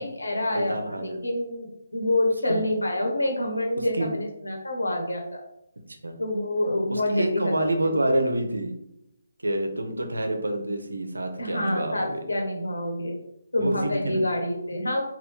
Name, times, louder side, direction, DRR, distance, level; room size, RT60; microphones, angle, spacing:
voice 1, 0.0-5.4 6.2-7.7 11.4-13.2 13.5-15.0, left 1 dB, 80° left, 1 dB, 1.2 m, -27 dB
voice 2, 0.5-1.2 2.5-2.6 3.9-4.1 6.0-6.2 6.9-8.7 9.4-12.2 13.6-14.2, right 1 dB, 80° right, 5 dB, 0.7 m, -27 dB
3.9 x 2.6 x 3.5 m, 0.82 s
figure-of-eight pair, 145°, 0 cm